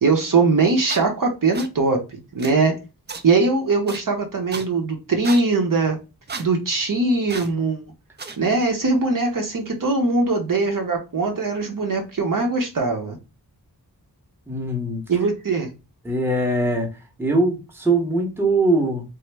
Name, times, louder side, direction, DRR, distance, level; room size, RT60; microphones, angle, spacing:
voice 1, 0.0-2.7 3.2-6.0 6.4-7.8 8.4-13.2 15.1-15.7, right 3 dB, 55° right, 2 dB, 0.7 m, -21 dB
sound 1, 0.9-1.0 1.5-1.7 2.4-2.5 3.1-3.2 3.9-4.0 4.5-4.6 5.2-5.4 6.3-6.5 7.3-7.5 8.2-8.4, right 4 dB, 30° right, 0.3 m, -33 dB
voice 2, 14.5-15.0 16.0-19.0, right 2 dB, 5° right, 0 dB, 0.7 m, -22 dB
3.0 x 2.0 x 3.3 m, 0.29 s
wide cardioid pair, 90°, 40 cm